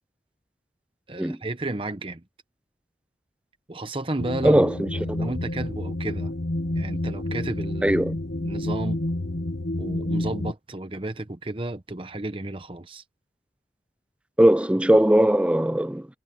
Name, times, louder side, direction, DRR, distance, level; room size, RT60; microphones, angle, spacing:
voice 1, 1.1-2.2 3.7-4.6 5.0-6.3 6.7-9.0 9.8-13.0, right 2 dB, 30° right, 1.0 m, -32 dB
sound 1, 4.2-10.5, left 1 dB, 70° left, 1.3 m, -29 dB
voice 2, 4.4-5.3 7.8-8.1 14.4-16.1, right 1 dB, 5° right, 0.4 m, -20 dB
head